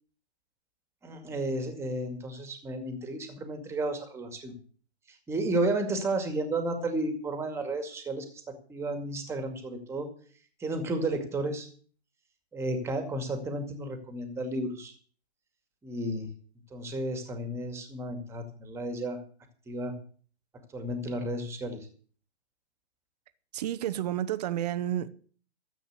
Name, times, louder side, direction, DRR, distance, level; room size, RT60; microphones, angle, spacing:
voice 1, 1.0-4.5 5.3-10.1 10.6-11.7 12.5-14.9 15.8-16.3 16.7-19.2 19.7-19.9 20.7-21.9, right 2 dB, 10° right, 2.2 m, -32 dB
voice 2, 23.5-25.1, right 12 dB, 35° right, 1.0 m, -30 dB
14.0 x 8.0 x 8.1 m
figure-of-eight pair, 135°, 34 cm